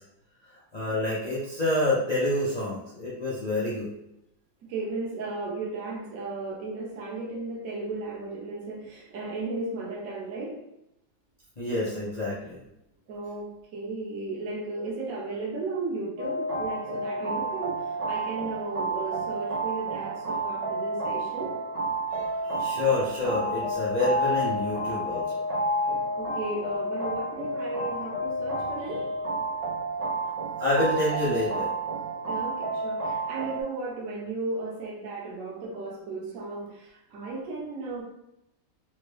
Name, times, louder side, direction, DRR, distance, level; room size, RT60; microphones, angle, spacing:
voice 1, 0.5-3.9 11.6-12.6 22.1-25.4 30.6-31.7, left 2 dB, 85° left, -8 dB, 0.3 m, -28 dB
voice 2, 4.6-10.6 13.1-21.5 26.1-29.2 32.3-38.0, right 3 dB, 60° right, -2 dB, 1.1 m, -35 dB
sound 1, 16.2-33.6, right 1 dB, 90° right, 1.4 m, -30 dB
3.5 x 2.2 x 3.2 m, 0.83 s
omnidirectional pair, 1.8 m